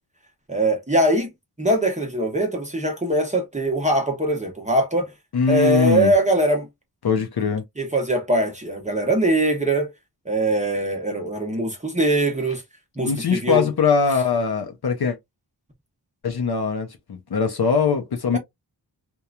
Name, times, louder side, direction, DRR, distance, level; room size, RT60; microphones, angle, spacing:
voice 1, 0.5-1.3 1.6-5.1 5.5-6.7 7.8-9.9 10.3-12.6 13.0-13.7, right 1 dB, 15° right, 0.7 m, -22 dB
voice 2, 5.3-6.1 7.0-7.6 13.0-15.2 16.2-18.4, left 5 dB, 60° left, 0.6 m, -21 dB
2.9 x 2.2 x 2.3 m
wide cardioid pair, 85°, 42 cm